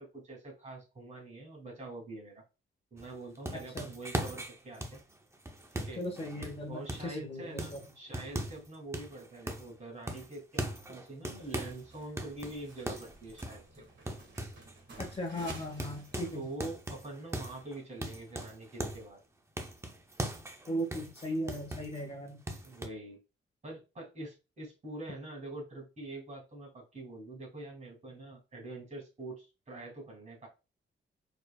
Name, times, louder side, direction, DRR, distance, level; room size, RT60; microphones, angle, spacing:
voice 1, 0.0-2.4 2.9-5.0 5.7-6.0 6.7-13.8 16.3-19.2 22.6-23.2 23.6-30.5, right 2 dB, 35° right, -1 dB, 2.7 m, -45 dB
sound 1, 3.0-7.2 7.6-8.7 8.9-9.8 10.1-11.8 12.2-14.7 15.0-15.2 15.5-19.1 19.6-22.0 22.5-22.9, right 1 dB, 15° right, 0.6 m, -40 dB
voice 2, 3.5-3.9 6.0-7.8 15.0-16.5 20.7-22.4, equal, 30° left, 3 dB, 1.0 m, -37 dB
sound 2, 11.4-16.5, right 3 dB, 60° right, 1.9 m, -53 dB
5.0 x 4.3 x 2.3 m, 0.29 s
wide cardioid pair, 135°, 20 cm